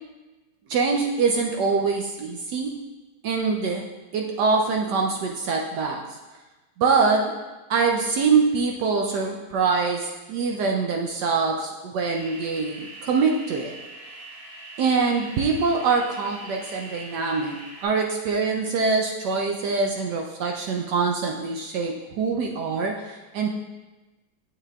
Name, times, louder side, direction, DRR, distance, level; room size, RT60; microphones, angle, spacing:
voice 1, 0.7-2.8 3.2-3.8 4.1-6.0 6.8-7.3 7.7-13.7 14.8-23.5, right 4 dB, 70° right, 1 dB, 1.1 m, -24 dB
sound 1, 12.0-17.8, right 2 dB, 50° right, 2.5 m, -42 dB
8.1 x 7.7 x 2.3 m, 1.2 s
omnidirectional pair, 2.2 m